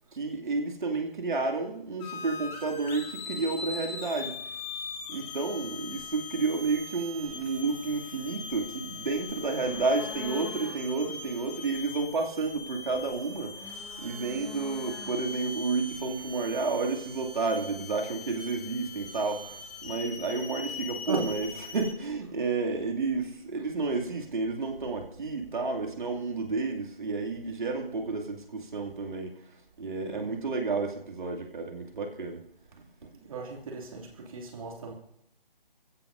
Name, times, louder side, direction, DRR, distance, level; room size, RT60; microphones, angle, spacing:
voice 1, 0.1-4.4 5.1-32.5 32.7-33.1, right 3 dB, 55° right, 2.7 m, -31 dB
sound 1, 2.0-21.9, left 4 dB, 15° left, 2.1 m, -41 dB
sound 2, 6.0-16.8, equal, 10° right, 2.1 m, -50 dB
voice 2, 33.1-34.9, right 4 dB, 35° right, 2.7 m, -37 dB
27.5 x 16.0 x 2.7 m
figure-of-eight pair, 150°, 29 cm